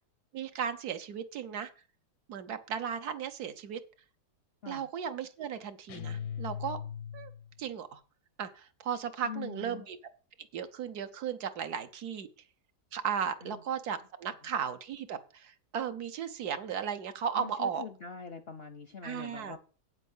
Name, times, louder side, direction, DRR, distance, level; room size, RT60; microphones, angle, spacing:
voice 1, 0.3-1.7 2.3-3.8 4.7-6.8 7.1-7.3 7.6-8.0 8.4-10.0 10.5-12.3 12.9-17.8 19.0-19.6, right 7 dB, 70° right, 9 dB, 1.3 m, -36 dB
sound 1, 5.9-7.6, left 8 dB, 85° left, 1.3 m, -39 dB
voice 2, 9.2-9.8 13.4-13.6 14.3-14.4 17.3-19.6, left 6 dB, 55° left, 10 dB, 0.7 m, -44 dB
8.6 x 8.1 x 5.5 m, 0.38 s
omnidirectional pair, 1.8 m